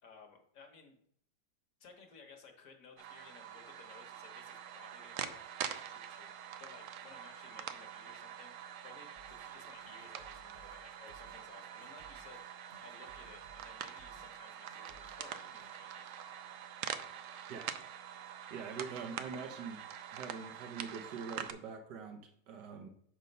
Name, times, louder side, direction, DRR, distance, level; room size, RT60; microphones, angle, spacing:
voice 1, 0.0-1.0 1.8-8.5 8.8-16.1, left 4 dB, 55° left, 4 dB, 1.4 m, -58 dB
sound 1, 3.0-21.5, right 9 dB, 70° right, 0.7 m, -45 dB
sound 2, 9.2-15.7, right 2 dB, 40° right, 0.9 m, -62 dB
voice 2, 18.5-19.8 20.1-22.9, right 5 dB, 90° right, 4 dB, 1.5 m, -44 dB
6.6 x 4.3 x 5.3 m, 0.65 s
omnidirectional pair, 1.8 m